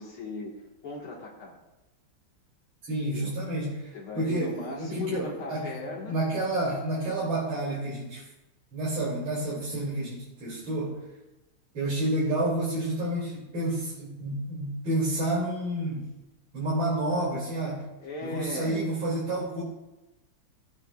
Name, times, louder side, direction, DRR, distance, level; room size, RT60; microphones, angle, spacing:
voice 1, 0.0-1.6 3.0-3.3 3.9-6.2 18.0-19.0, left 3 dB, 85° left, -5 dB, 2.6 m, -38 dB
voice 2, 2.9-8.2 8.7-11.0 11.7-16.1 16.5-17.8 18.2-19.6, right 1 dB, 75° right, -7 dB, 3.6 m, -30 dB
18.0 x 8.9 x 2.4 m, 0.99 s
omnidirectional pair, 2.3 m